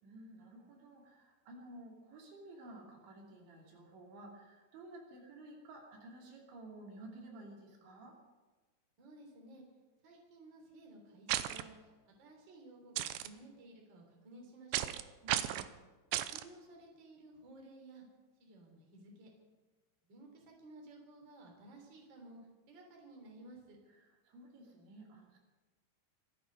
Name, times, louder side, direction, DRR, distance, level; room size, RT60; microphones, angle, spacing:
voice 1, 0.0-8.2 15.2-15.8 23.9-25.4, right 1 dB, 65° right, -1 dB, 4.9 m, -53 dB
voice 2, 9.0-9.6 10.0-15.0 16.3-18.0 18.4-19.3 20.1-22.4 22.7-23.8, right 2 dB, 25° right, 1 dB, 3.3 m, -55 dB
sound 1, 11.3-11.6 13.0-13.3 14.7-15.0 15.3-15.7 16.1-16.4, right 13 dB, 85° right, 2.5 m, -34 dB
26.0 x 10.0 x 5.3 m, 1.3 s
omnidirectional pair, 5.7 m